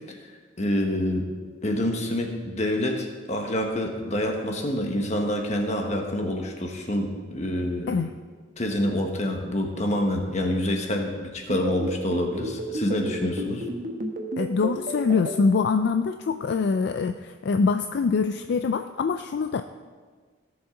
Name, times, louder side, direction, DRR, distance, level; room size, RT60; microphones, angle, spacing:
voice 1, 0.6-1.3 1.6-8.0 8.6-13.7, left 1 dB, 35° left, 3 dB, 1.3 m, -27 dB
sound 1, 11.5-15.3, right 1 dB, 45° right, 1.1 m, -31 dB
voice 2, 14.4-19.6, left 5 dB, 60° left, 8 dB, 0.4 m, -24 dB
17.0 x 7.2 x 3.8 m, 1.5 s
head